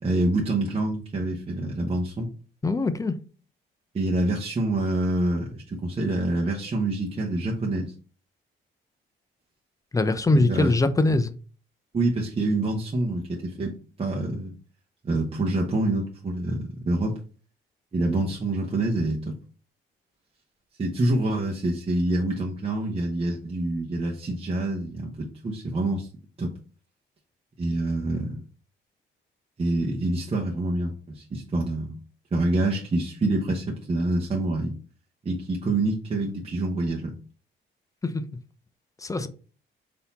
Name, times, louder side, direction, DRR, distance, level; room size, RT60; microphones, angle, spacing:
voice 1, 0.0-2.3 3.9-7.9 10.3-10.7 11.9-14.5 15.0-17.2 17.9-19.4 20.8-26.1 26.4-26.5 27.6-28.4 29.6-32.0 32.3-34.7 35.2-37.1, right 2 dB, 30° right, 0.9 m, -26 dB
voice 2, 2.6-3.1 9.9-11.4 38.0-38.2 39.0-39.3, left 2 dB, 15° left, 0.5 m, -22 dB
4.0 x 2.8 x 4.0 m
cardioid pair, 90°, 20 cm